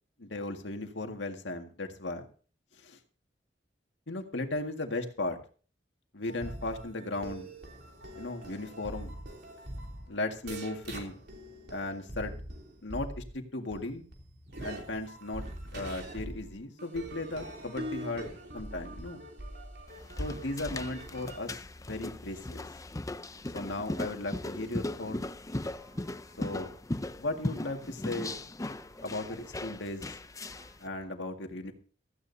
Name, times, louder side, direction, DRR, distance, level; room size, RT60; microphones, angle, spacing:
voice 1, 0.2-2.3 2.8-3.0 4.1-5.4 6.1-7.5 8.2-9.1 10.1-11.2 11.7-12.3 12.8-14.0 14.6-15.4 15.7-19.2 20.2-21.6 21.9-22.6 23.5-25.2 26.4-26.7 27.2-28.4 29.0-30.1 30.8-31.7, left 2 dB, 85° left, 4 dB, 2.0 m, -36 dB
sound 1, 6.2-13.3 13.7-21.4, right 1 dB, 65° right, 3.2 m, -43 dB
sound 2, 19.9-30.8, left 1 dB, 20° left, 0.6 m, -38 dB
voice 2, 25.6-26.7 27.1-27.2 28.8-29.3 30.4-31.1, right 1 dB, 5° right, -1 dB, 1.7 m, -59 dB
16.5 x 14.5 x 2.8 m, 0.40 s
head